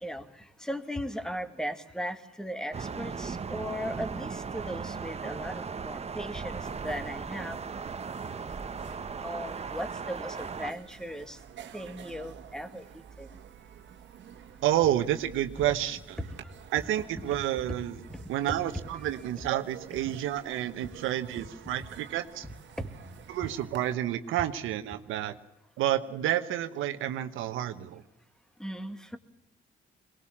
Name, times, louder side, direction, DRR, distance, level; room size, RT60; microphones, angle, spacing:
voice 1, 0.0-7.6 9.2-11.4 11.7-13.3 16.2-16.5 17.2-17.4 17.6-17.8 18.1-18.6 19.9-20.2 21.6-21.9 22.4-22.9 28.6-29.2, equal, 5° left, 9 dB, 2.1 m, -38 dB
Thunder, 2.7-10.7, right 5 dB, 30° right, 1.1 m, -37 dB
sound 1, 6.5-23.9, right 8 dB, 65° right, 1.7 m, -50 dB
voice 2, 14.6-16.2 16.7-18.0 18.3-22.4 23.3-25.3 25.8-28.0, right 12 dB, 90° right, 9 dB, 1.1 m, -30 dB
22.5 x 19.5 x 7.3 m, 0.86 s
cardioid pair, 90°, 20 cm